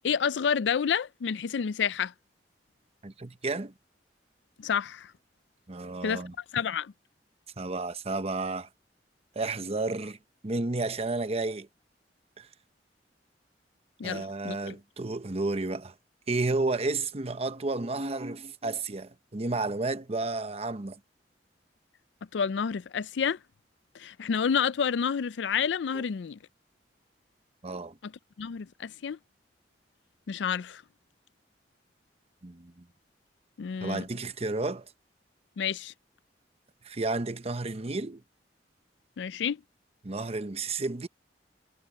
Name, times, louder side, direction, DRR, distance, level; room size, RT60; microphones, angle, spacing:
voice 1, 0.0-2.1 4.6-5.1 6.0-6.2 6.5-6.9 14.0-14.8 22.3-23.4 23.9-26.4 28.0-28.1 28.4-29.2 30.3-30.8 33.6-34.0 35.6-35.9 39.2-39.6, left 7 dB, 85° left, 0.4 m, -29 dB
voice 2, 3.0-3.7 5.7-6.3 7.6-8.7 9.3-10.2 10.4-11.7 12.4-12.5 14.0-15.9 16.3-21.0 25.9-26.0 27.6-28.0 32.4-32.9 33.8-34.9 36.8-38.2 40.0-41.1, right 3 dB, 35° right, 0.9 m, -32 dB
head